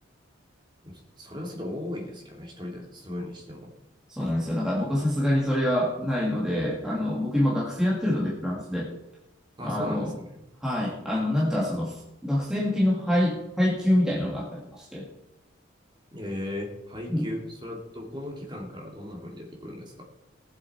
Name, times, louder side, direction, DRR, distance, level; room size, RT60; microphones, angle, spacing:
voice 1, 0.8-3.7 9.6-10.4 16.1-20.1, left 1 dB, 25° right, -1 dB, 2.8 m, -37 dB
voice 2, 4.1-8.9 9.6-10.1 10.6-15.1 17.1-17.3, left 1 dB, 5° right, -4 dB, 1.8 m, -26 dB
19.0 x 7.5 x 4.4 m, 0.94 s
head